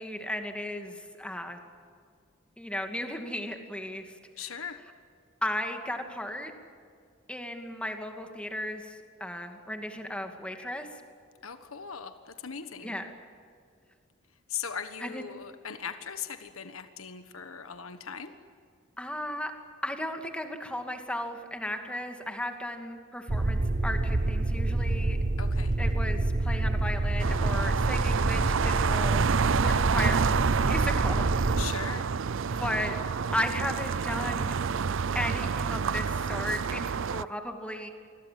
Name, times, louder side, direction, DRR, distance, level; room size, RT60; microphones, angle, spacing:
voice 1, 0.0-1.6 2.6-4.1 5.4-6.5 7.3-10.9 12.8-13.0 15.0-15.2 19.0-19.5 19.8-25.2 25.8-29.3 29.5-31.6 32.5-33.0 33.3-34.5 35.1-37.9, left 1 dB, 5° left, 5 dB, 2.4 m, -35 dB
voice 2, 4.4-4.8 11.4-13.0 14.5-18.3 25.4-25.7 31.6-32.1, left 7 dB, 90° left, 9 dB, 1.4 m, -39 dB
sound 1, 23.3-31.7, right 2 dB, 40° right, 0.9 m, -27 dB
sound 2, 27.2-37.2, right 6 dB, 65° right, 0.5 m, -28 dB
27.5 x 21.5 x 7.7 m, 2.2 s
head